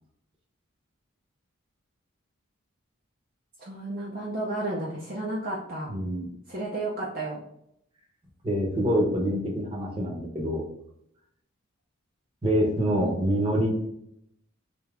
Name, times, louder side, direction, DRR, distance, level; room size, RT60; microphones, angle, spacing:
voice 1, 3.6-5.9 6.5-7.4 13.0-13.1, right 2 dB, 45° right, -4 dB, 0.7 m, -32 dB
voice 2, 5.9-6.3 8.4-10.6 12.4-13.8, equal, 25° right, -2 dB, 1.0 m, -26 dB
3.3 x 3.0 x 3.5 m, 0.73 s
head